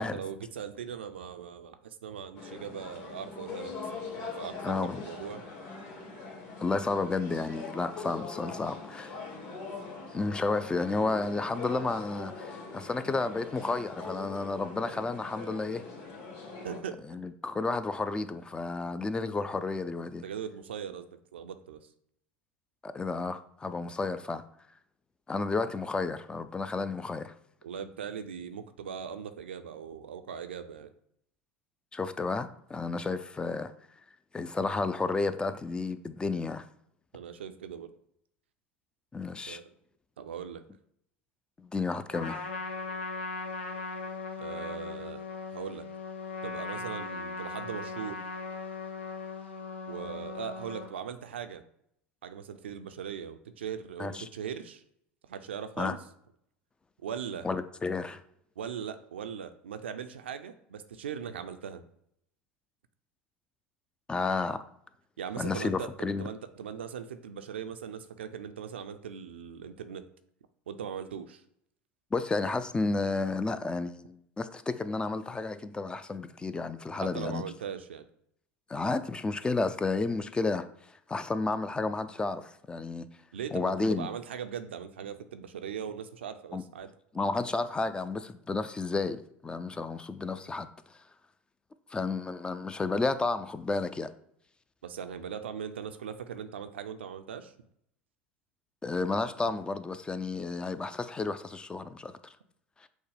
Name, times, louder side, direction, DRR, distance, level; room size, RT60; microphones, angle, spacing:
voice 1, 0.0-5.5 16.6-17.0 20.2-21.9 27.6-30.9 37.1-37.9 39.5-39.7 40.2-40.6 44.4-45.3 45.5-45.9 46.4-48.2 49.9-51.6 52.2-54.8 55.2-56.0 57.0-57.5 58.6-61.8 65.2-65.9 66.2-70.0 70.7-71.4 76.9-78.1 83.3-86.9 94.8-97.5, right 8 dB, 80° right, 0.4 m, -40 dB
sound 1, 2.4-16.8, left 4 dB, 45° left, 1.5 m, -42 dB
voice 2, 4.6-5.0 6.6-9.2 10.1-15.8 17.1-20.2 22.8-24.4 25.3-27.3 31.9-33.7 34.3-36.6 39.1-39.6 41.6-42.4 54.0-54.3 55.8-56.0 57.4-58.2 64.1-64.6 65.4-66.2 72.1-77.4 78.7-80.7 81.1-83.1 83.5-84.1 86.5-86.6 87.1-90.7 91.9-94.1 98.8-102.3 102.8-102.9, left 3 dB, 15° left, 0.3 m, -32 dB
Trumpet, 42.1-50.9, left 4 dB, 80° left, 0.7 m, -38 dB
6.2 x 2.1 x 3.3 m
hypercardioid pair, 80°, 6 cm